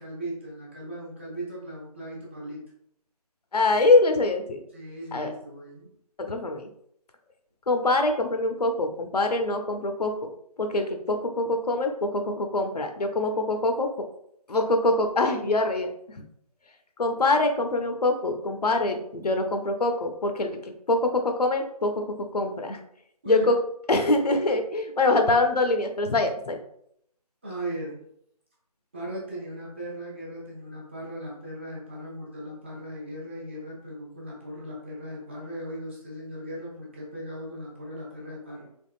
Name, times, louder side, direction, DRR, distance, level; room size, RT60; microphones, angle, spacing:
voice 1, 0.0-2.6 4.7-5.9 23.2-23.5 27.4-28.0 28.9-38.7, equal, 20° right, -5 dB, 0.7 m, -37 dB
voice 2, 3.5-4.6 5.1-5.3 6.2-6.7 7.7-10.3 10.6-13.9 14.5-16.2 17.0-21.9 22.3-22.8 23.3-23.6 23.9-26.6, left 2 dB, 75° left, 5 dB, 0.7 m, -24 dB
3.5 x 3.5 x 2.4 m, 0.71 s
figure-of-eight pair, 165°, 20 cm